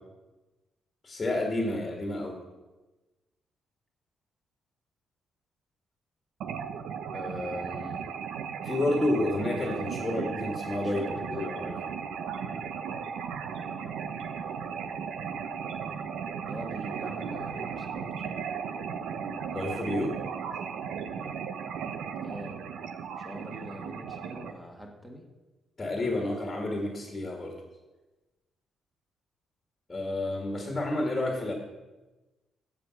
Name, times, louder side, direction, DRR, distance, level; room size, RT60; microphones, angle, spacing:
voice 1, 1.0-2.4 7.1-8.0 8.6-11.7 19.5-20.2 25.8-27.6 29.9-31.5, left 1 dB, 20° left, 0 dB, 1.8 m, -30 dB
sound 1, 6.4-24.5, right 7 dB, 80° right, 0.9 m, -36 dB
voice 2, 10.8-11.8 16.5-18.3 18.7-18.8 22.2-22.6 23.2-25.2, equal, 5° right, 1 dB, 1.5 m, -44 dB
16.0 x 5.3 x 6.4 m, 1.1 s
cardioid pair, 165°, 0 cm